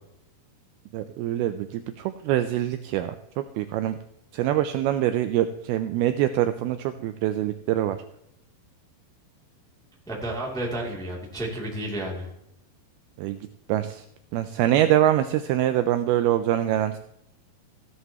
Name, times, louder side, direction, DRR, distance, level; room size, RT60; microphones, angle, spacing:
voice 1, 0.9-4.0 4.3-8.0 13.2-13.4 13.7-14.1 14.3-17.0, right 12 dB, 85° right, 9 dB, 2.2 m, -24 dB
voice 2, 10.1-12.3, right 1 dB, ahead, -2 dB, 1.5 m, -31 dB
16.0 x 11.0 x 3.0 m, 0.79 s
omnidirectional pair, 5.0 m